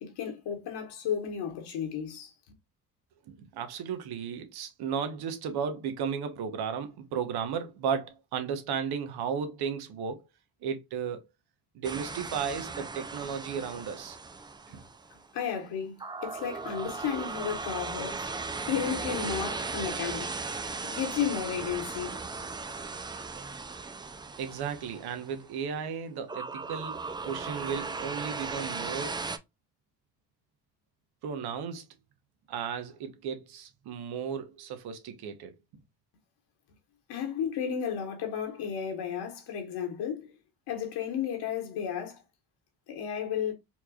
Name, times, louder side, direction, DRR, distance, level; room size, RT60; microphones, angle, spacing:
voice 1, 0.0-2.3 15.3-18.3 18.6-20.3 20.9-22.2 37.1-40.3 40.7-42.2 42.9-43.5, left 8 dB, 75° left, 1.4 m, -33 dB
voice 2, 3.3-10.2 10.6-11.2 11.7-14.2 14.7-14.8 24.4-29.2 31.2-31.8 32.5-35.5, right 7 dB, 70° right, 1.0 m, -34 dB
sound 1, 11.8-15.2 16.0-25.6 26.3-29.4, right 4 dB, 10° right, 0.3 m, -37 dB
4.4 x 2.9 x 2.4 m
supercardioid pair, 80°, 40 cm